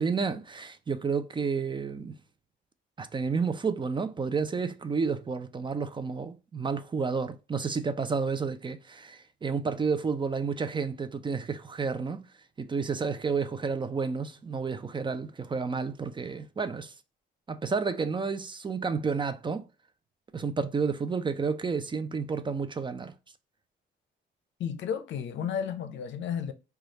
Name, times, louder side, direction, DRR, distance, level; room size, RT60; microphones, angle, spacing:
voice 1, 0.0-2.2 3.0-12.2 12.6-16.9 17.5-19.7 20.3-23.1, right 5 dB, 25° right, 0.4 m, -31 dB
voice 2, 24.6-26.5, left 8 dB, 70° left, 0.6 m, -32 dB
3.1 x 2.3 x 3.9 m
cardioid pair, 90°, 20 cm